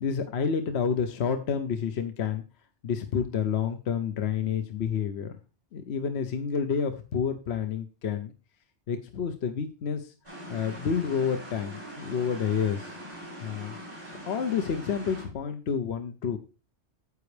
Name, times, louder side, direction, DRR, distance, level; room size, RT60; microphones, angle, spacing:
voice 1, 0.0-2.4 2.8-5.3 5.7-8.3 8.9-10.1 10.5-13.0 13.4-13.7 14.3-16.4, left 7 dB, 65° left, 7 dB, 1.0 m, -29 dB
sound 1, 10.2-15.2, equal, 25° right, 6.1 m, -42 dB
9.6 x 8.2 x 3.3 m, 0.32 s
omnidirectional pair, 1.2 m